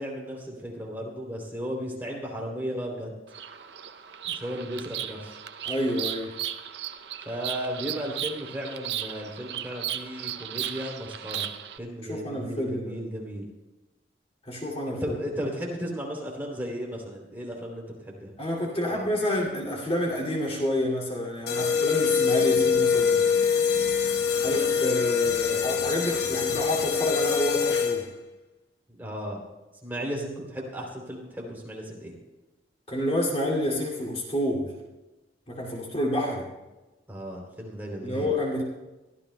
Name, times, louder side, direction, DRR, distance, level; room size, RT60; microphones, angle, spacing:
voice 1, 0.0-3.1 4.2-5.4 7.2-11.5 11.8-13.5 14.9-18.3 18.9-19.0 29.0-29.4 29.8-32.2 37.1-38.3, equal, 10° right, -2 dB, 3.0 m, -35 dB
Bird vocalization bird call bird song, 3.3-11.8, right 11 dB, 70° right, 0.6 m, -36 dB
voice 2, 5.6-6.3 12.0-12.9 14.5-15.2 18.4-23.3 24.4-28.1 32.9-34.7 35.5-36.5 38.0-38.6, left 1 dB, 35° left, -3 dB, 2.4 m, -28 dB
sound 1, 21.5-28.2, left 6 dB, 65° left, 1.0 m, -24 dB
23.0 x 14.0 x 2.2 m, 1.1 s
head